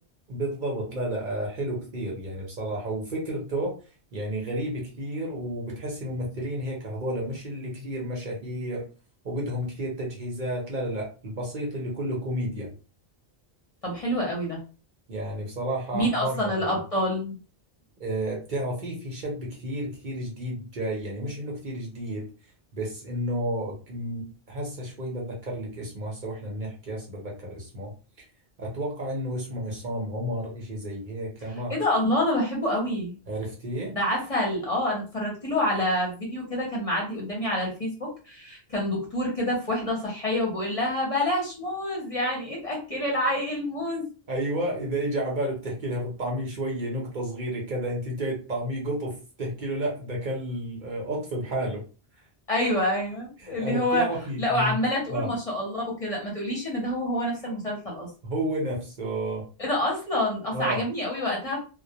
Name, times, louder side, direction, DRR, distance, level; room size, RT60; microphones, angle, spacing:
voice 1, 0.3-3.8 4.1-8.8 9.2-12.7 15.1-16.5 18.0-22.3 22.7-27.9 28.6-31.7 33.3-33.9 44.3-51.8 53.4-54.7 55.1-55.3 58.2-59.5 60.5-60.8, right 1 dB, 50° right, -2 dB, 0.8 m, -31 dB
voice 2, 13.8-14.6 15.9-17.3 31.5-33.2 33.9-44.0 52.5-54.1 54.4-58.1 59.6-61.6, left 1 dB, 35° left, -3 dB, 0.8 m, -27 dB
2.1 x 2.1 x 2.7 m, 0.35 s
omnidirectional pair, 1.1 m